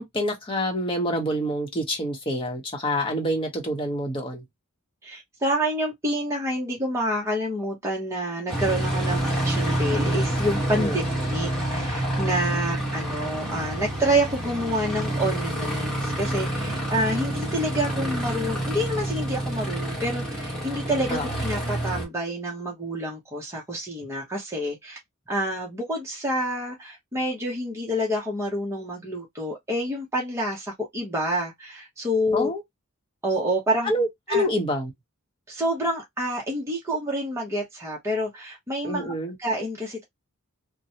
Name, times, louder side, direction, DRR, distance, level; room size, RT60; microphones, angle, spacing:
voice 1, 0.0-4.4 10.7-11.0 13.0-13.1 21.1-21.2 32.3-32.6 33.8-34.9 38.8-39.3, equal, 25° left, 0.9 m, -27 dB
voice 2, 5.0-11.0 11.3-25.0 25.3-32.5 33.2-33.9 34.3-34.5 35.5-39.1 39.4-40.0, equal, 15° right, 0.8 m, -28 dB
Aircraft, 8.5-22.1, right 1 dB, 5° left, 1.2 m, -28 dB
3.0 x 2.1 x 2.8 m
head